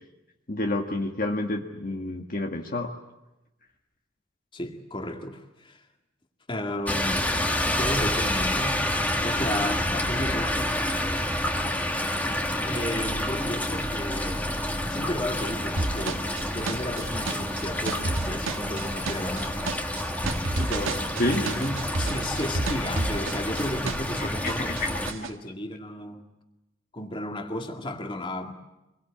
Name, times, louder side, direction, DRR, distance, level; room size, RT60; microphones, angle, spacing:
voice 1, 0.5-2.9 21.2-21.5 24.2-24.9, left 2 dB, 45° left, 1.7 m, -29 dB
voice 2, 4.5-5.8 6.5-7.3 7.8-8.8 9.2-11.4 12.2-14.5 14.9-19.9 20.5-26.2 26.9-28.5, left 1 dB, 25° left, 2.2 m, -34 dB
sound 1, 6.9-25.1, left 1 dB, 10° left, 1.7 m, -28 dB
sound 2, 15.8-24.2 24.5-25.3, right 2 dB, 80° right, 1.6 m, -31 dB
26.0 x 22.5 x 8.8 m
head